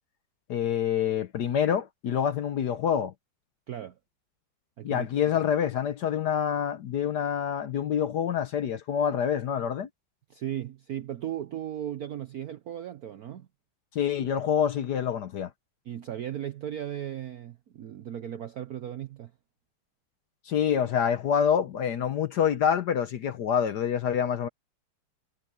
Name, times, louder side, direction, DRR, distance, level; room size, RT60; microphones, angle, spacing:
voice 1, 0.5-3.1 4.8-9.9 13.9-15.5 20.5-24.5, left 8 dB, 60° left, 1.2 m, -26 dB
voice 2, 3.7-4.0 4.8-5.1 10.3-13.5 15.9-19.3, right 11 dB, 70° right, 0.9 m, -36 dB
omnidirectional pair, 2.4 m